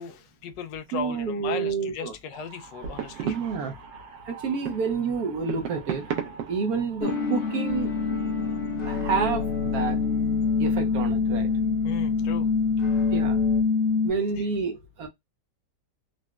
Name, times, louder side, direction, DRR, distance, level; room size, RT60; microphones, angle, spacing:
voice 1, 0.0-3.4 11.8-12.5 14.4-14.5, left 6 dB, 85° left, 1.2 m, -37 dB
voice 2, 0.9-2.1 3.2-3.7 4.3-6.1 6.5-7.9 8.9-10.0 10.6-11.5 13.1-13.4 14.0-15.1, right 5 dB, 65° right, 1.0 m, -29 dB
sound 1, 2.3-7.6, right 8 dB, 85° right, 1.3 m, -36 dB
sound 2, 7.0-14.1, left 4 dB, 65° left, 0.7 m, -25 dB
sound 3, 7.7-13.6, left 7 dB, 50° left, 1.5 m, -36 dB
3.9 x 2.1 x 2.3 m
omnidirectional pair, 1.9 m